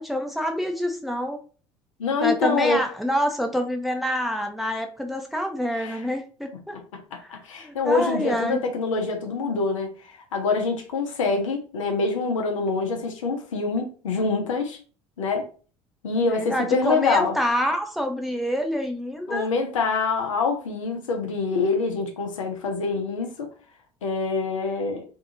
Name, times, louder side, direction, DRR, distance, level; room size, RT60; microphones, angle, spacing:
voice 1, 0.0-1.4 2.2-6.8 7.2-7.3 7.6-8.6 16.3-19.5, equal, ahead, 0.7 m, -27 dB
voice 2, 2.0-2.8 5.7-6.0 6.9-14.8 15.2-15.5 16.0-17.4 19.3-23.5 24.0-25.0, left 4 dB, 85° left, 0.7 m, -25 dB
2.7 x 2.4 x 2.7 m
hypercardioid pair, 65°, 16 cm